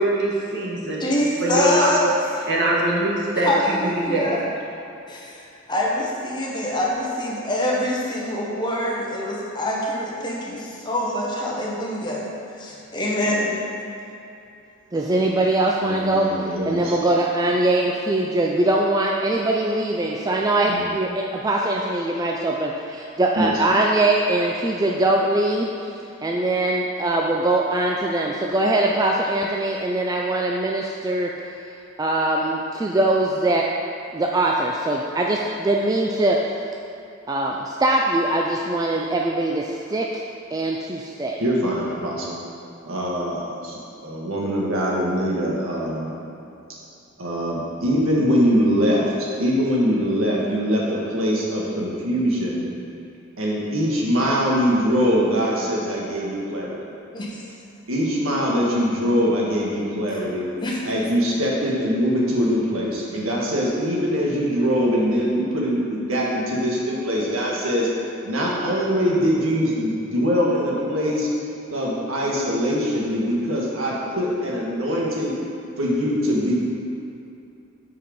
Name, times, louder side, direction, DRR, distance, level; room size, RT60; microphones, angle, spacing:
voice 1, 0.0-1.0 1.4-1.9 2.5-4.3, right 1 dB, 60° right, -4 dB, 1.5 m, -23 dB
voice 2, 1.0-2.5 3.3-4.4 5.1-12.3 12.6-13.6 51.0-51.1 57.1-57.4 60.1-60.2 60.6-60.9, left 1 dB, 20° left, -4 dB, 1.1 m, -25 dB
voice 3, 14.9-16.3 16.7-25.7 26.2-31.3 32.0-33.6 34.1-36.4 37.3-40.1 40.5-41.4, right 2 dB, 20° right, -1 dB, 0.4 m, -22 dB
voice 4, 15.8-16.9 20.7-20.9 23.4-23.5 41.4-42.3 42.8-43.8 44.0-46.2 47.2-49.1 49.4-52.7 53.4-56.8 57.9-60.5 60.8-67.9 68.2-71.3 71.7-75.3 75.8-76.6, equal, 85° right, -4 dB, 1.6 m, -22 dB
7.6 x 4.8 x 5.2 m, 2.8 s
head